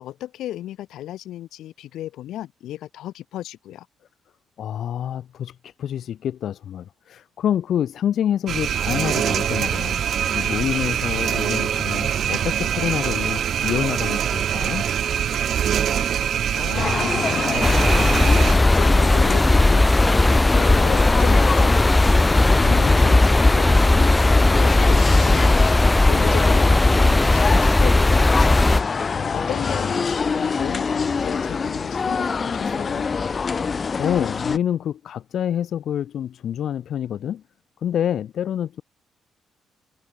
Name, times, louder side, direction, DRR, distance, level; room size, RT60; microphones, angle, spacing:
voice 1, 0.0-3.9 15.6-18.1 18.5-22.2 22.5-28.6 29.0-33.0, left 13 dB, 80° left, 3.7 m, -35 dB
voice 2, 4.6-10.0 10.3-14.8 22.6-23.1 29.1-29.4 34.0-37.4 37.8-38.8, left 10 dB, 65° left, 7.6 m, -27 dB
sound 1, 8.5-18.5, right 9 dB, 65° right, 3.7 m, -24 dB
sound 2, 16.7-34.6, left 5 dB, 40° left, 2.0 m, -26 dB
sound 3, 17.6-28.8, left 2 dB, 15° left, 0.3 m, -16 dB
cardioid pair, 90°, 0 cm